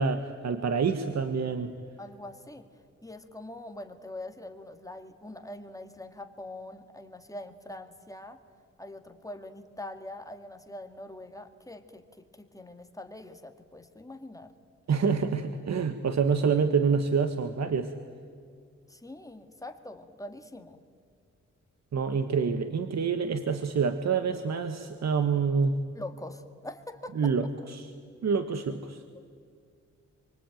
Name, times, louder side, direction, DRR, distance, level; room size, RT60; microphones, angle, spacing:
voice 1, 0.0-1.7 14.9-17.9 21.9-25.8 27.1-27.9 28.2-29.0, right 5 dB, 65° right, 8 dB, 1.4 m, -27 dB
voice 2, 2.0-8.4 8.8-14.5 18.9-20.8 26.0-27.2, left 1 dB, 10° left, 6 dB, 1.9 m, -43 dB
27.0 x 24.0 x 9.2 m, 2.2 s
wide cardioid pair, 125°, 29 cm